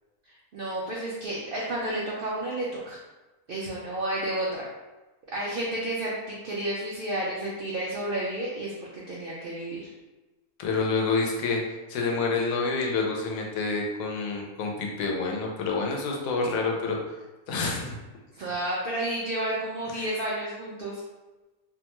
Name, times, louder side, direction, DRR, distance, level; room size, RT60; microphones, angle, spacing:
voice 1, 0.5-3.0 3.5-4.6 5.3-9.9 18.3-21.0, right 1 dB, 75° right, -5 dB, 0.5 m, -31 dB
voice 2, 10.6-11.6 11.9-17.0 17.5-18.0 19.9-20.1, left 4 dB, 80° left, 0 dB, 1.0 m, -28 dB
2.7 x 2.1 x 2.9 m, 1.1 s
omnidirectional pair, 1.5 m